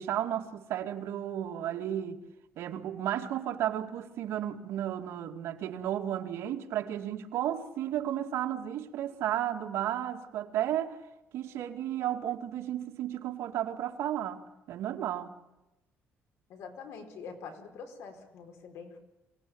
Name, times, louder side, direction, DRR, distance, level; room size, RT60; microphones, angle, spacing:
voice 1, 0.0-2.2 2.6-11.0 11.3-14.4 14.7-15.3, right 11 dB, 75° right, 2.5 m, -33 dB
voice 2, 16.5-19.0, left 5 dB, 80° left, 4.8 m, -45 dB
27.0 x 18.5 x 8.9 m
cardioid pair, 155°, 5 cm